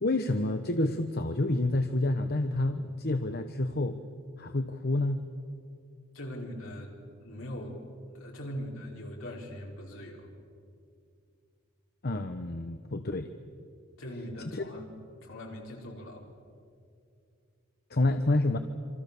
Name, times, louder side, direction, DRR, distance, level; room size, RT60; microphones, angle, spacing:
voice 1, 0.0-4.0 4.4-5.2 12.0-13.3 14.5-14.6 17.9-18.6, left 2 dB, 45° left, 8 dB, 1.0 m, -28 dB
voice 2, 6.1-6.9 7.2-7.8 8.1-10.3 14.0-14.9 15.2-16.3, equal, 65° left, -1 dB, 4.8 m, -41 dB
27.0 x 26.0 x 6.9 m, 2.4 s
head